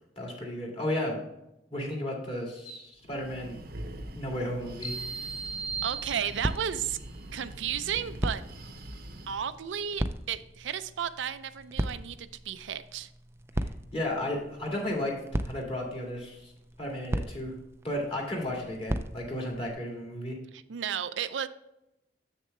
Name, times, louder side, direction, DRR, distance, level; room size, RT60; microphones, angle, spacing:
voice 1, 0.2-1.3 1.7-3.6 4.2-5.0 13.5-16.5 16.8-17.5 17.8-20.4, left 1 dB, 30° left, -1 dB, 2.1 m, -34 dB
Breathing, 3.0-9.6, right 1 dB, 55° right, 0.7 m, -44 dB
sound 1, 4.8-6.8, right 5 dB, 55° left, 2.8 m, -37 dB
sound 2, 5.2-19.7, right 1 dB, 15° right, 0.3 m, -38 dB
voice 2, 5.8-7.0 7.3-8.4 9.3-13.1 20.5-21.5, right 8 dB, 85° right, 12 dB, 0.4 m, -33 dB
7.5 x 6.5 x 3.2 m, 0.88 s
head